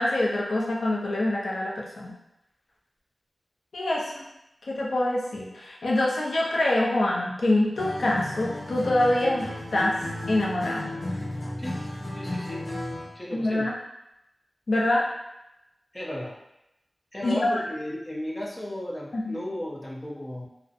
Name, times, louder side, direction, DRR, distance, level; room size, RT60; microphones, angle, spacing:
voice 1, 0.0-2.1 3.7-4.2 4.7-10.0 10.3-10.9 13.3-13.7 14.7-15.1 17.2-17.6 19.1-19.4, left 1 dB, 85° left, -3 dB, 0.5 m, -25 dB
Acoustic guitar, 7.8-13.2, left 1 dB, 55° left, 0.8 m, -34 dB
voice 2, 12.1-12.6 13.1-13.7 15.9-16.3 17.1-20.5, left 1 dB, 25° left, -3 dB, 0.5 m, -35 dB
2.6 x 2.0 x 2.4 m, 0.89 s
wide cardioid pair, 60°, 0 cm